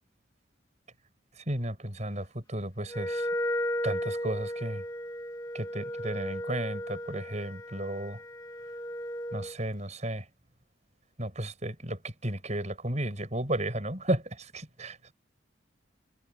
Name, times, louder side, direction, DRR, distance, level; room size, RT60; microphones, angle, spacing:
voice 1, 1.4-3.3 3.8-4.8 5.5-8.2 9.3-10.3 11.2-15.1, right 1 dB, 35° right, 6.7 m, -33 dB
Wind instrument woodwind instrument, 2.9-9.6, equal, 20° left, 1.5 m, -35 dB
head